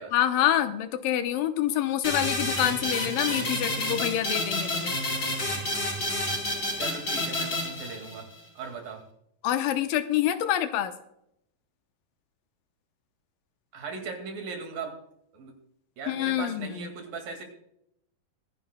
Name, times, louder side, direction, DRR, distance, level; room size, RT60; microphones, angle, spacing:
voice 1, 0.1-4.9 9.4-10.9 16.1-16.9, left 11 dB, 85° left, 9 dB, 2.5 m, -26 dB
sound 1, 2.0-8.4, left 1 dB, 35° left, 4.5 m, -29 dB
voice 2, 6.8-8.3 8.6-9.1 13.7-15.0 15.3-15.5 16.0-17.4, right 4 dB, 85° right, 4 dB, 3.9 m, -38 dB
23.5 x 10.0 x 2.3 m, 0.76 s
omnidirectional pair, 3.9 m